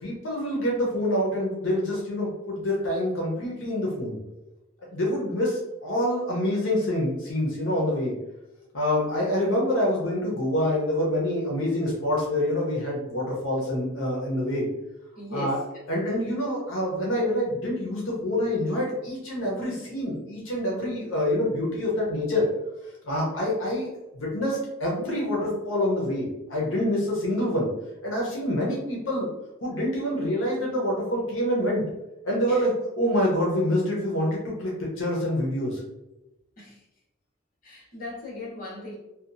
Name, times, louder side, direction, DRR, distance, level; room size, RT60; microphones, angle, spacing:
voice 1, 0.0-4.2 4.9-8.1 8.7-14.7 15.3-15.6 15.9-22.4 23.0-23.9 24.1-27.7 28.0-29.3 29.6-31.8 32.2-35.8, left 1 dB, 80° left, -3 dB, 0.7 m, -26 dB
voice 2, 15.2-15.6 32.5-32.6 36.6-36.8 37.6-39.0, left 2 dB, 45° left, -7 dB, 0.9 m, -37 dB
2.8 x 2.2 x 2.5 m, 0.97 s
head